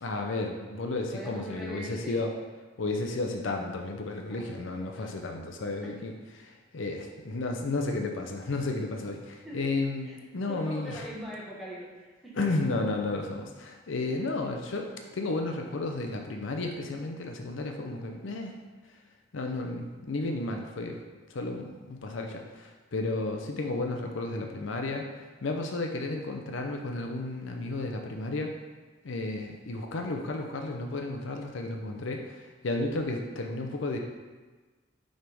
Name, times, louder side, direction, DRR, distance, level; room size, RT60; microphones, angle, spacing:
voice 1, 0.0-2.3 2.8-11.1 12.3-18.5 19.3-21.0 21.3-28.5 29.0-34.0, left 2 dB, 65° left, 3 dB, 0.6 m, -33 dB
voice 2, 1.1-2.2 4.3-4.4 4.9-5.2 5.8-5.9 9.4-9.7 10.0-10.1 10.4-12.4 14.0-14.1, equal, ahead, -6 dB, 1.1 m, -41 dB
6.4 x 3.5 x 4.7 m, 1.3 s
head